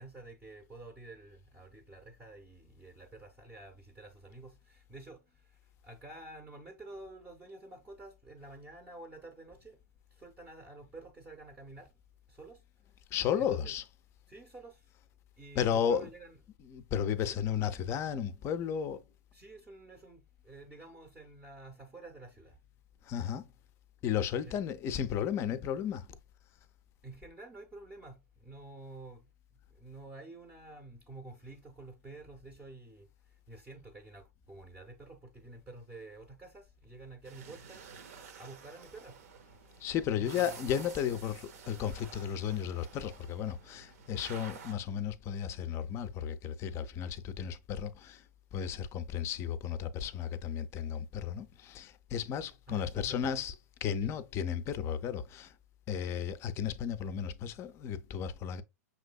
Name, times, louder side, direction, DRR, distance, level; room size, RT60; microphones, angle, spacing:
voice 1, 0.0-9.8 10.1-11.9 12.3-12.6 13.4-13.7 14.3-14.9 15.4-16.4 17.2-17.4 19.3-22.6 24.4-24.6 27.0-29.3 29.7-37.9 38.4-39.2 40.1-40.6 52.7-53.3 54.0-54.1, right 2 dB, 15° right, 0.6 m, -50 dB
voice 2, 13.1-13.8 15.6-16.1 16.7-19.0 23.0-23.5 24.0-26.1 39.8-48.2 48.5-53.5 53.8-55.5 55.9-58.6, left 8 dB, 30° left, 0.4 m, -34 dB
sound 1, 37.2-44.7, right 6 dB, 65° right, 0.7 m, -51 dB
5.9 x 2.6 x 2.3 m
hypercardioid pair, 110°, 9 cm